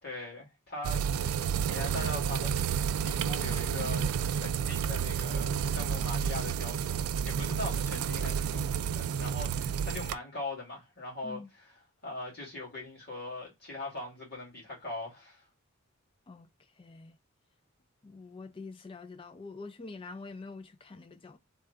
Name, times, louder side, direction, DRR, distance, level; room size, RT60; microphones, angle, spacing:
voice 1, 0.0-11.7 12.0-15.5, left 2 dB, 45° left, 2.1 m, -41 dB
sound 1, 0.8-10.2, right 7 dB, 75° right, 0.3 m, -31 dB
voice 2, 16.8-17.2 18.0-21.4, left 3 dB, 25° left, 0.3 m, -45 dB
3.6 x 2.2 x 3.7 m
head